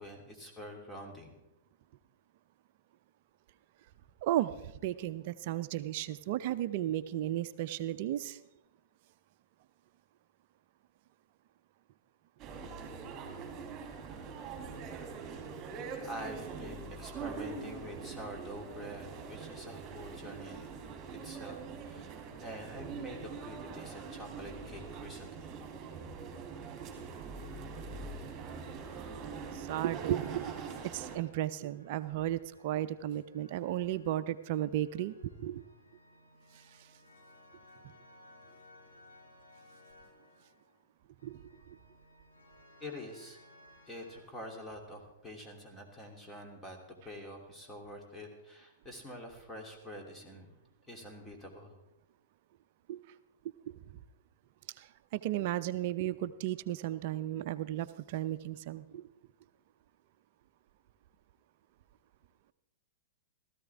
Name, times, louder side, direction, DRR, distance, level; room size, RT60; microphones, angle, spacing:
voice 1, 0.0-1.3 16.0-20.7 21.2-25.5 42.8-43.4 43.9-46.8 47.0-50.6 50.9-51.7, equal, 10° left, 2 dB, 2.8 m, -46 dB
voice 2, 4.2-8.4 29.5-35.7 36.5-36.6 41.2-41.8 52.9-53.0 53.7-53.8 54.8-59.1, right 13 dB, 50° right, 13 dB, 0.6 m, -34 dB
sound 1, 12.4-31.2, right 5 dB, 30° right, 2.9 m, -43 dB
sound 2, 26.7-44.2, left 1 dB, 80° left, 5.0 m, -61 dB
16.5 x 14.0 x 3.5 m, 0.91 s
figure-of-eight pair, 110°, 0 cm